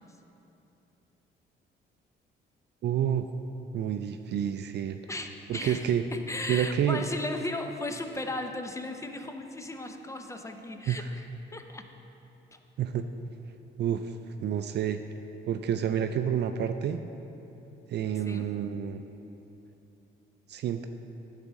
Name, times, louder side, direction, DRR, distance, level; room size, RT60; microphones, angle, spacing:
voice 1, 2.8-3.3 3.7-5.0 5.5-6.0 6.5-7.0 10.9-11.1 12.8-13.0 13.8-14.1 14.4-15.0 15.5-17.0 17.9-19.0 20.5-20.9, right 9 dB, 60° right, 8 dB, 0.4 m, -29 dB
voice 2, 5.1-11.3 11.5-11.9 12.5-12.6 18.3-18.5, left 2 dB, 15° left, 5 dB, 0.7 m, -36 dB
9.6 x 4.1 x 7.5 m, 3.0 s
cardioid pair, 90°, 20 cm